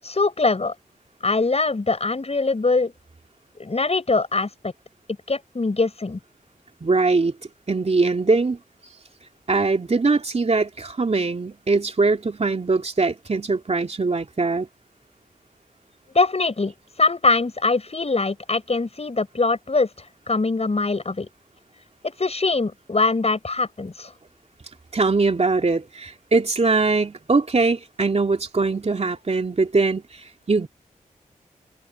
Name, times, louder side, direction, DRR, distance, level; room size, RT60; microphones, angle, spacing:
voice 1, 0.0-0.7 1.2-2.9 3.6-4.7 5.3-6.2 16.1-21.3 22.0-24.1, left 3 dB, 45° left, 7.9 m, -23 dB
voice 2, 6.8-7.3 7.7-8.6 9.5-14.7 24.9-30.7, right 3 dB, 45° right, 2.9 m, -21 dB
cardioid pair, 45°, 15 cm